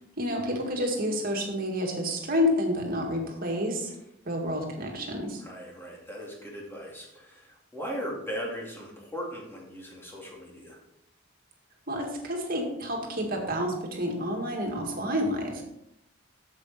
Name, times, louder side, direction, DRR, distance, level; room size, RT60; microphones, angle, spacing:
voice 1, 0.2-3.9 4.2-5.4 11.9-15.6, equal, 50° right, 1 dB, 2.0 m, -29 dB
voice 2, 5.4-10.8, equal, 10° left, -2 dB, 2.4 m, -38 dB
8.3 x 7.4 x 4.2 m, 0.82 s
head